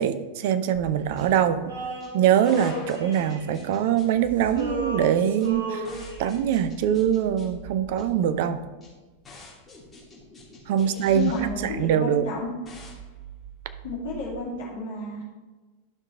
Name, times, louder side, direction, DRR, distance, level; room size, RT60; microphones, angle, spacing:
voice 1, 0.0-1.7 2.1-5.9 6.2-8.6 10.7-11.3 11.6-12.2, right 9 dB, 50° right, 11 dB, 0.6 m, -23 dB
sound 1, 0.7-14.3, right 4 dB, 15° left, 2.9 m, -44 dB
Male singing, 1.7-4.1 4.4-6.6, right 2 dB, 65° right, 1.7 m, -34 dB
Gunshot gunfire, 2.5-3.7, left 3 dB, 35° left, 2.2 m, -44 dB
voice 2, 10.8-12.5 13.8-15.2, left 2 dB, 55° left, -6 dB, 2.4 m, -32 dB
11.5 x 5.9 x 3.4 m, 1.2 s
figure-of-eight pair, 90°, 0 cm